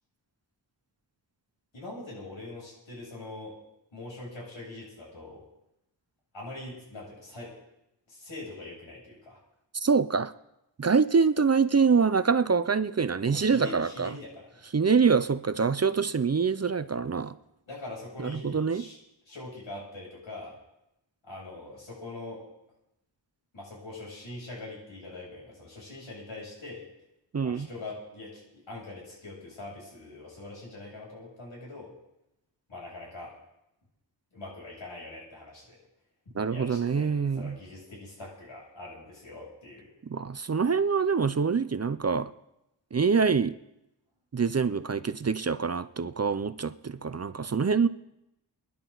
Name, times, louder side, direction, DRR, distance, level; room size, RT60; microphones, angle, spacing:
voice 1, 1.7-3.5 3.9-5.4 6.3-7.5 8.1-9.4 13.3-14.5 17.7-19.0 19.3-20.6 21.2-22.4 23.5-26.9 27.4-31.9 32.7-33.4 34.3-35.8 36.5-39.9, left 2 dB, 90° left, -4 dB, 7.9 m, -43 dB
voice 2, 9.7-10.3 10.8-14.1 14.7-17.4 18.2-18.8 27.3-27.7 36.3-37.6 40.1-42.3 42.9-43.5 44.3-47.9, right 5 dB, 35° right, 14 dB, 0.6 m, -25 dB
26.5 x 11.0 x 4.0 m, 0.87 s
wide cardioid pair, 105°, 45 cm